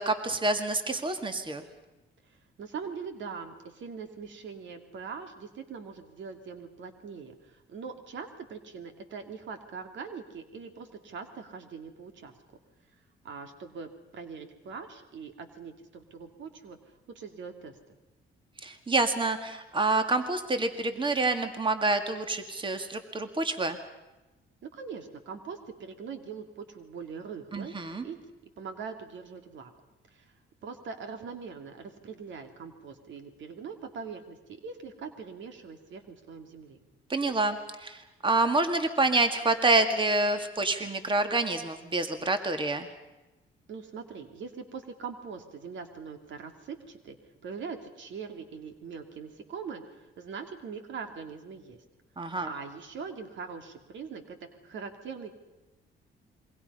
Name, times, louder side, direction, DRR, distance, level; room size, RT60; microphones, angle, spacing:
voice 1, 0.0-1.6 18.6-23.8 27.5-28.0 37.1-42.9 52.2-52.5, right 2 dB, 25° right, 7 dB, 2.1 m, -27 dB
voice 2, 2.6-12.3 13.2-16.8 17.1-17.8 24.6-27.7 28.0-28.2 28.6-29.7 30.1-30.3 30.6-36.8 43.7-47.2 47.4-51.8 52.4-55.3, right 5 dB, 70° right, 6 dB, 2.6 m, -42 dB
27.5 x 23.0 x 5.5 m, 1.1 s
cardioid pair, 90°, 20 cm